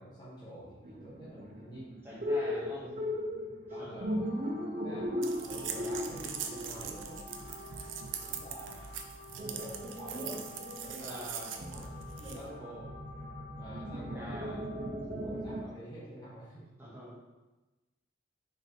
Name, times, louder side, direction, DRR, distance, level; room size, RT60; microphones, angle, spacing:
voice 1, 0.0-1.9 2.8-3.0 3.4-4.2 4.8-5.1 5.4-7.3 8.1-9.0 9.4-12.9 13.5-14.7 15.2-16.7, equal, 25° left, -10 dB, 1.7 m, -48 dB
sound 1, 0.8-8.3 8.6-8.7 8.9-9.0 9.4-15.6, left 1 dB, 40° right, 0.6 m, -38 dB
voice 2, 2.0-2.9 3.8-4.1 11.0-11.6 14.0-14.6 16.8-17.2, equal, 10° right, -8 dB, 1.8 m, -45 dB
sound 2, 4.2-14.9, left 2 dB, 70° left, 2.0 m, -52 dB
sound 3, 5.2-12.5, right 7 dB, 90° right, 0.6 m, -42 dB
6.3 x 4.6 x 3.4 m, 1.1 s
head